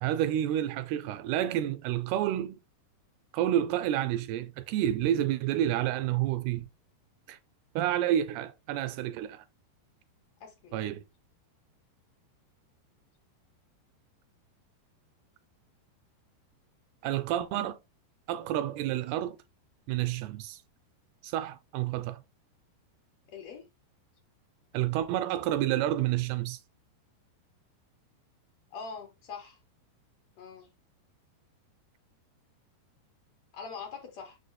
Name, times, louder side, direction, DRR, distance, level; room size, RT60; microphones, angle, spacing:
voice 1, 0.0-2.6 3.3-6.7 7.3-7.4 7.8-9.4 10.7-11.0 17.0-17.8 18.3-19.4 19.9-20.6 21.2-22.2 24.7-26.6, right 12 dB, 80° right, 2.3 m, -29 dB
voice 2, 10.4-10.7 23.3-23.7 28.7-29.6 30.4-30.7 33.5-34.4, left 5 dB, 85° left, 1.5 m, -43 dB
7.0 x 6.5 x 2.2 m
omnidirectional pair, 4.9 m